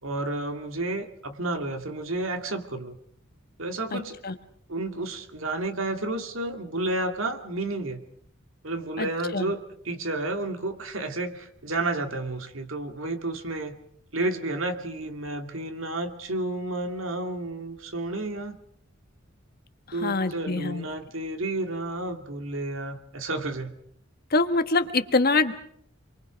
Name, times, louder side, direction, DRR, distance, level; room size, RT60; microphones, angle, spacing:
voice 1, 0.0-3.0 3.6-4.2 4.7-8.0 8.6-9.6 9.8-13.8 14.1-18.6 19.9-23.7, right 2 dB, 75° right, 5 dB, 2.5 m, -31 dB
voice 2, 3.9-4.3 9.0-9.5 20.0-20.9 24.3-25.5, left 3 dB, 50° left, 9 dB, 1.4 m, -25 dB
28.5 x 23.5 x 5.2 m, 0.65 s
head